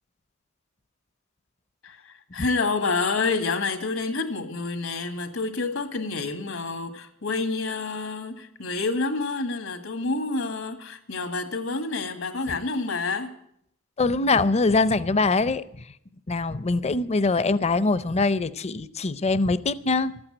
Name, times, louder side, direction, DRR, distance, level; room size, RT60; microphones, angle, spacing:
voice 1, 1.8-13.3, left 3 dB, 85° left, 1.9 m, -28 dB
voice 2, 14.0-15.8 16.3-20.2, left 3 dB, 30° left, 0.5 m, -23 dB
13.0 x 8.8 x 9.9 m
head